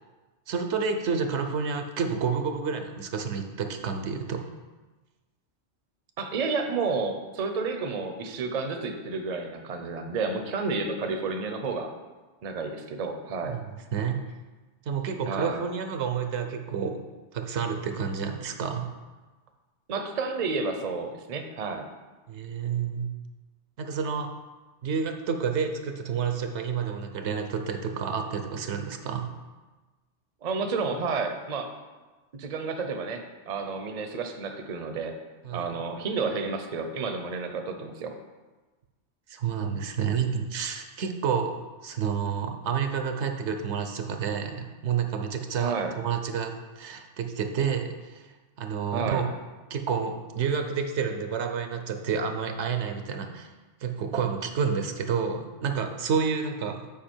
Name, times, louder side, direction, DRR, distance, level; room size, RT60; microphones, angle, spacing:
voice 1, 0.5-4.4 13.4-13.6 13.9-14.2 14.9-17.0 17.3-18.9 22.3-23.1 23.8-24.3 24.8-29.3 35.4-35.8 39.3-41.5 41.8-48.3 48.6-49.3 49.7-53.5 53.8-56.8, right 6 dB, 75° right, 6 dB, 1.0 m, -29 dB
voice 2, 6.2-11.9 12.4-13.6 15.3-15.6 19.9-21.9 30.4-31.7 32.3-35.1 35.5-38.1 45.6-45.9 48.9-49.2, right 4 dB, 45° right, 6 dB, 0.7 m, -31 dB
7.5 x 5.0 x 4.4 m, 1.2 s
omnidirectional pair, 1.2 m